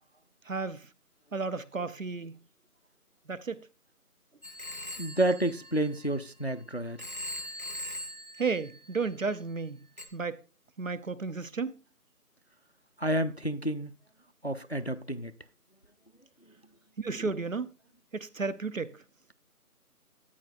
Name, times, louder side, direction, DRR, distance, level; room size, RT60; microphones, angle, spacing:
voice 1, 0.5-0.9 1.3-2.3 3.3-3.6 8.4-9.8 10.1-10.4 10.8-11.7 17.0-17.7 18.1-19.0, right 4 dB, 60° right, 0.7 m, -33 dB
Telephone, 4.4-6.5 7.0-9.3 10.0-10.1, left 1 dB, 30° right, 0.9 m, -41 dB
voice 2, 5.0-7.1 13.0-13.9 14.4-15.3, right 1 dB, 45° left, 0.4 m, -30 dB
13.5 x 8.7 x 2.5 m
figure-of-eight pair, 170°, 46 cm